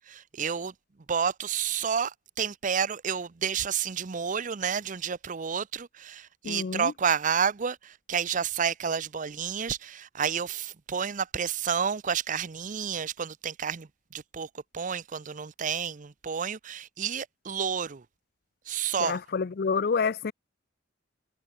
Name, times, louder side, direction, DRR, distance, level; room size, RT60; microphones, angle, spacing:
voice 1, 0.1-0.7 1.1-13.9 14.1-14.5 14.7-18.0 18.7-19.2, right 7 dB, 40° right, 0.6 m, -30 dB
voice 2, 6.4-6.9 19.0-20.3, left 5 dB, 55° left, 0.5 m, -28 dB
head